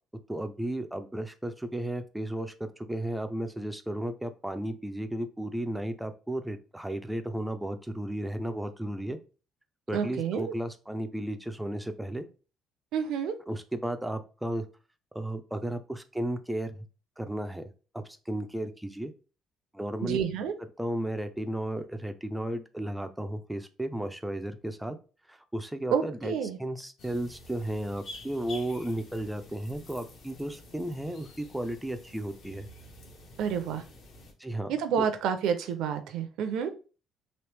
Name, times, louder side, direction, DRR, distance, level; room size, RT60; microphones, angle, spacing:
voice 1, 0.3-9.2 9.9-12.3 13.5-14.6 15.1-16.7 17.2-19.1 19.7-20.2 20.8-25.0 25.3-26.3 26.6-32.7 34.4-35.1, right 1 dB, 5° right, 7 dB, 0.3 m, -34 dB
voice 2, 9.9-10.5 12.9-13.3 20.0-20.5 25.9-26.6 33.4-33.8 34.7-36.7, right 7 dB, 70° right, 8 dB, 0.5 m, -29 dB
sound 1, 27.0-34.3, left 2 dB, 50° left, 0.8 m, -49 dB
3.1 x 2.8 x 3.3 m, 0.35 s
cardioid pair, 140°, 0 cm